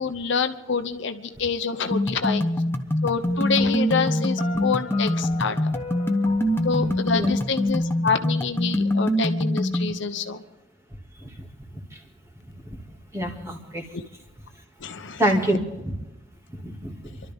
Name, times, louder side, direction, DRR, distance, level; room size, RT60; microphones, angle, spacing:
voice 1, 0.0-2.4 3.0-5.6 6.6-10.4 14.8-15.2, left 5 dB, 65° left, 8 dB, 0.9 m, -27 dB
sound 1, 1.9-9.9, left 1 dB, 10° left, 1.0 m, -24 dB
Piano, 3.6-8.5, left 3 dB, 30° left, 1.6 m, -39 dB
voice 2, 13.1-13.9 15.2-16.0 16.5-17.2, equal, 15° right, 0 dB, 2.3 m, -26 dB
28.5 x 12.5 x 3.7 m, 1.0 s
head